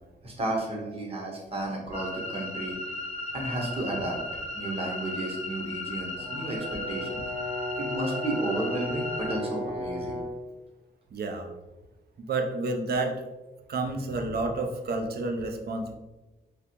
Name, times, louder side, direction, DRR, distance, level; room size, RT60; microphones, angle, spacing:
voice 1, 0.2-2.8 3.3-4.2 4.5-7.2 7.8-10.2, right 1 dB, 30° right, -1 dB, 1.0 m, -32 dB
sound 1, 1.9-9.4, left 1 dB, 35° left, 0.6 m, -36 dB
Brass instrument, 6.2-10.4, left 1 dB, 5° right, 0.8 m, -35 dB
voice 2, 11.1-11.5 12.2-13.1 13.7-16.0, right 3 dB, 60° right, 4 dB, 0.5 m, -30 dB
3.2 x 2.5 x 2.8 m, 1.1 s
cardioid pair, 65°, 18 cm